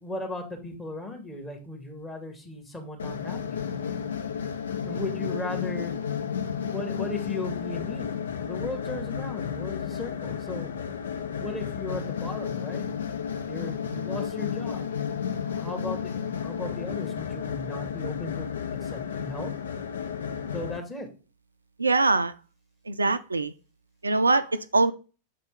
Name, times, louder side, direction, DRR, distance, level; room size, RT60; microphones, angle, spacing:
voice 1, 0.0-4.0 4.9-5.9 6.6-8.1 8.4-10.8 11.4-12.8 13.5-14.8 15.5-18.6 18.9-19.5 20.5-21.1, left 2 dB, 15° left, 2.1 m, -36 dB
sound 1, 3.0-20.8, left 7 dB, 65° left, 0.6 m, -32 dB
voice 2, 21.8-22.4 22.8-23.5 24.0-24.9, right 3 dB, 80° right, 0.4 m, -23 dB
6.8 x 4.1 x 3.6 m
figure-of-eight pair, 90°, 0 cm